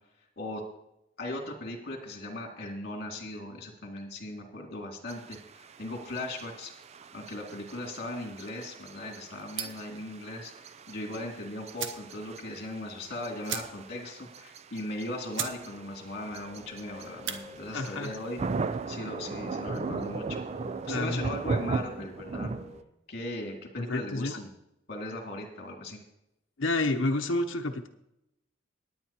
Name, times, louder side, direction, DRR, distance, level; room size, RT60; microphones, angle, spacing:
voice 1, 1.2-6.7 7.1-20.4 20.9-22.5 23.1-24.5 24.9-26.0, left 1 dB, 55° left, 1 dB, 2.5 m, -38 dB
sound 1, 5.1-22.8, right 4 dB, 35° right, 0.4 m, -38 dB
sound 2, 9.5-9.9 11.3-11.4 11.7-12.1 12.5-12.6 12.8-12.9 13.4-14.0 14.4-14.5 15.0-15.1 15.3-15.6 15.9-16.3 17.1-17.4, right 8 dB, 75° right, 1.0 m, -36 dB
sound 3, 15.4-22.8, left 2 dB, 25° left, 3.4 m, -50 dB
voice 2, 17.7-18.1 20.9-21.2 23.8-24.4 26.6-27.9, left 2 dB, 80° left, 3 dB, 0.9 m, -29 dB
19.0 x 9.3 x 2.9 m, 0.85 s
head